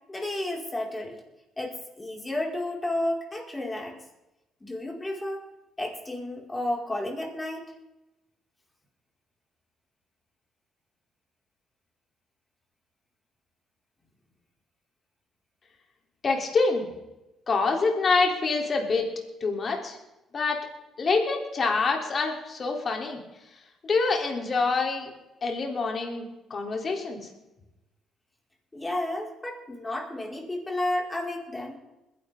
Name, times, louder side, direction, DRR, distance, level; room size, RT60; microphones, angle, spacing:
voice 1, 0.1-1.2 1.6-4.0 4.6-5.4 5.8-7.7 28.7-31.8, left 1 dB, 20° left, -1 dB, 5.3 m, -32 dB
voice 2, 16.2-16.9 17.5-19.1 19.4-20.0 20.3-20.6 21.0-23.2 23.8-25.1 25.4-26.2 26.5-27.2, left 4 dB, 45° left, 2 dB, 3.5 m, -26 dB
21.5 x 11.0 x 3.8 m, 0.96 s
supercardioid pair, 65°, 0 cm